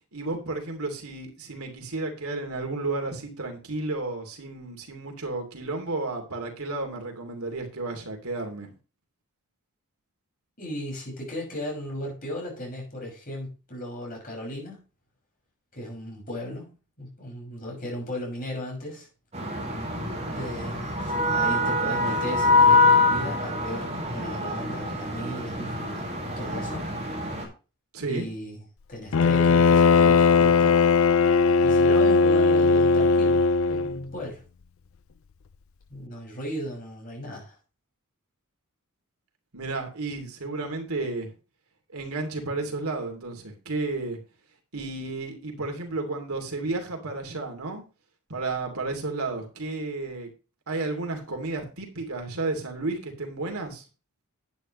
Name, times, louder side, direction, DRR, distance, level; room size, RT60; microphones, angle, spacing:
voice 1, 0.1-8.7 27.9-28.3 39.5-41.3 41.9-44.2 44.7-47.8 48.3-50.3 50.7-53.8, right 3 dB, 80° right, 2.9 m, -32 dB
voice 2, 10.6-14.8 15.7-16.7 17.0-19.1 20.3-26.1 26.4-26.9 28.1-28.6 28.9-30.8 31.6-34.4 35.9-37.5, left 1 dB, 40° left, 6.1 m, -36 dB
sound 1, 19.3-27.4, left 3 dB, 30° right, 4.6 m, -24 dB
Bowed string instrument, 29.1-34.0, left 4 dB, 65° left, 0.5 m, -19 dB
11.0 x 9.3 x 3.2 m
head